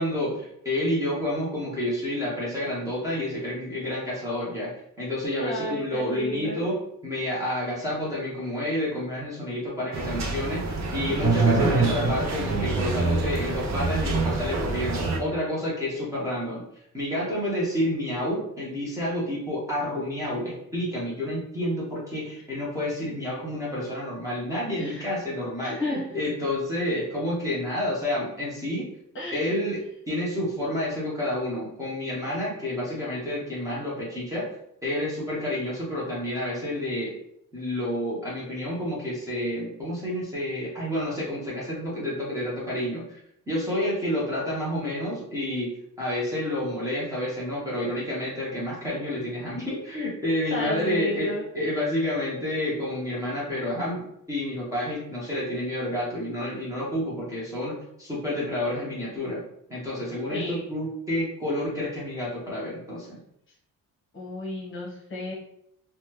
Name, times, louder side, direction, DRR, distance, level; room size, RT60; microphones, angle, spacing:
voice 1, 0.0-4.7 5.0-6.8 7.0-16.6 16.9-28.8 29.3-34.5 34.8-37.1 37.5-43.2 43.5-45.7 46.0-59.4 59.7-63.2, left 1 dB, 10° right, -7 dB, 0.6 m, -29 dB
voice 2, 5.4-6.7 24.8-25.2 25.6-26.1 29.1-29.6 50.5-51.4 60.3-60.6 64.1-65.3, left 1 dB, 40° left, -3 dB, 0.9 m, -33 dB
sound 1, 9.9-15.2, right 3 dB, 55° right, 0.5 m, -25 dB
3.2 x 2.2 x 2.9 m, 0.75 s
wide cardioid pair, 180°, 33 cm